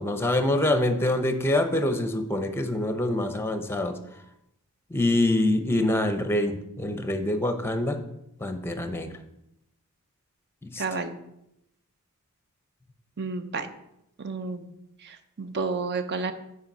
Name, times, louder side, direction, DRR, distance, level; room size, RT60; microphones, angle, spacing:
voice 1, 0.0-4.0 4.9-8.0 8.4-9.1 10.6-10.8, left 1 dB, 10° left, 8 dB, 0.7 m, -25 dB
voice 2, 10.8-11.1 13.2-13.7 14.2-14.7 15.0-16.3, right 4 dB, 50° right, 9 dB, 0.7 m, -31 dB
8.7 x 4.8 x 5.3 m, 0.84 s
head